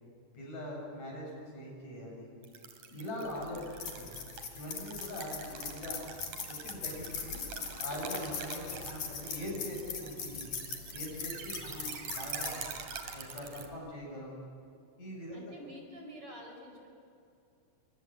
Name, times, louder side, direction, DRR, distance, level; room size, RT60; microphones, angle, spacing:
voice 1, 0.3-2.3 2.9-3.7 4.0-4.2 4.5-6.0 6.5-7.4 7.8-10.5 10.9-12.6 13.1-14.5 15.0-15.5, left 1 dB, 65° left, -2 dB, 9.4 m, -42 dB
sound 1, 2.4-13.7, right 6 dB, 80° right, 3.9 m, -45 dB
sound 2, 3.3-13.7, left 6 dB, 90° left, 4.3 m, -42 dB
voice 2, 15.3-16.9, equal, 45° right, 2 dB, 5.9 m, -48 dB
28.5 x 25.5 x 8.1 m, 2.6 s
omnidirectional pair, 3.5 m